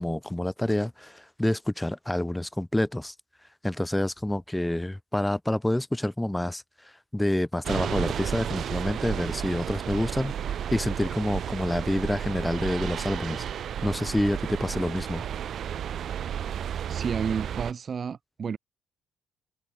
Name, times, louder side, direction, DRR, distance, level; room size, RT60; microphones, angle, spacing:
voice 1, 0.0-3.1 3.6-6.6 7.1-13.4 13.8-15.2, left 1 dB, 5° left, 0.4 m, -28 dB
sound 1, 7.6-17.7, right 9 dB, 65° right, 1.2 m, -32 dB
voice 2, 16.9-18.6, right 6 dB, 45° right, 3.0 m, -31 dB
cardioid pair, 90°, 0 cm